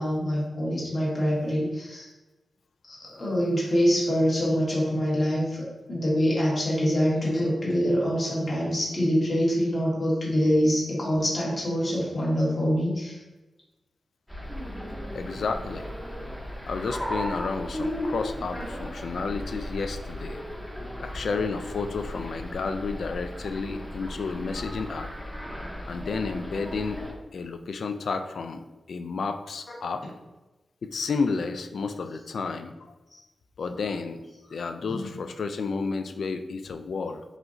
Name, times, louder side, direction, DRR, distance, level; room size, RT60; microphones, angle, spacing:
voice 1, 0.0-2.1 2.9-13.2 34.9-35.1, equal, 35° left, -5 dB, 1.5 m, -25 dB
sound 1, 14.3-27.1, equal, 5° left, 0.7 m, -36 dB
voice 2, 15.1-15.8 16.7-20.4 21.0-25.1 25.8-27.0 27.3-30.1 30.8-32.9 33.6-34.2 34.5-37.2, left 4 dB, 70° left, 7 dB, 0.3 m, -31 dB
4.9 x 3.8 x 2.6 m, 1.1 s
wide cardioid pair, 165°, 0 cm